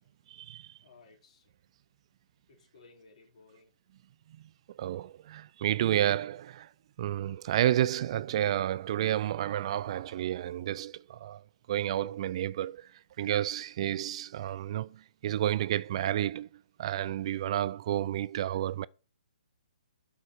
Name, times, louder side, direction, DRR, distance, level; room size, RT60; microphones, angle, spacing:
voice 1, 0.3-0.8 4.8-6.7 7.0-18.9, right 12 dB, 45° right, 0.3 m, -31 dB
voice 2, 0.8-1.5 2.5-3.7 17.9-18.1, left 3 dB, 55° left, 3.4 m, -59 dB
8.3 x 4.8 x 6.9 m
hypercardioid pair, 145°, 4 cm